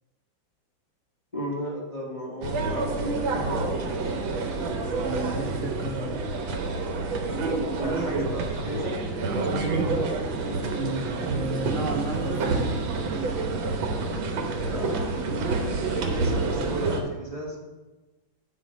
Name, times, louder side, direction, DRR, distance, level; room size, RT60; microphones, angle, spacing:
voice 1, 1.3-3.7 7.8-8.9 14.6-17.6, left 1 dB, 20° left, -5 dB, 1.3 m, -35 dB
sound 1, 2.4-17.0, right 3 dB, 80° right, 1.6 m, -28 dB
voice 2, 5.0-6.2 10.8-12.8, right 2 dB, 60° right, 0 dB, 0.8 m, -32 dB
8.8 x 4.4 x 5.0 m, 1.2 s
omnidirectional pair, 2.2 m